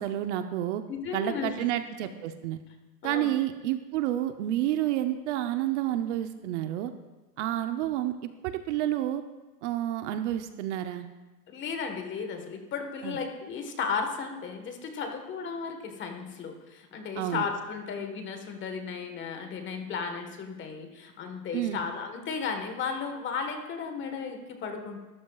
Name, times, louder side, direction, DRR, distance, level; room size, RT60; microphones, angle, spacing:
voice 1, 0.0-0.8 1.1-2.6 3.0-6.9 7.4-8.2 8.4-9.2 9.6-11.1 13.0-13.2 17.2-17.4 21.5-21.8, right 12 dB, 45° right, 8 dB, 0.8 m, -29 dB
voice 2, 0.9-1.6 3.0-3.3 11.5-25.0, left 5 dB, 25° left, 5 dB, 1.4 m, -34 dB
20.5 x 13.5 x 2.4 m, 1.1 s
hypercardioid pair, 140°, 50 cm